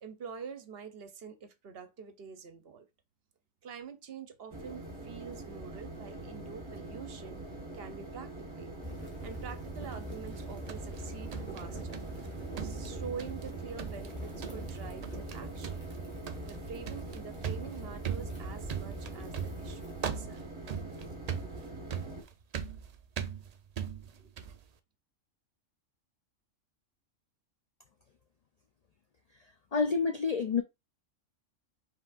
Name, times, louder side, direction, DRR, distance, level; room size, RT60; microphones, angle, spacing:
voice 1, 0.0-2.9 3.6-7.4 7.7-8.8 9.2-12.0 12.6-15.9 16.4-20.5 24.0-24.4, right 6 dB, 55° right, 0.8 m, -46 dB
sound 1, 4.5-22.2, right 2 dB, 25° right, 1.1 m, -44 dB
sound 2, 8.8-20.1, right 2 dB, 10° left, 1.3 m, -43 dB
sound 3, 10.3-12.3 12.6-13.5 13.8-14.1 14.4-14.8 15.0-15.4 15.6-24.6, right 8 dB, 80° right, 0.3 m, -40 dB
voice 2, 29.7-30.6, left 5 dB, 85° left, 0.3 m, -28 dB
5.5 x 3.5 x 2.4 m
omnidirectional pair, 1.3 m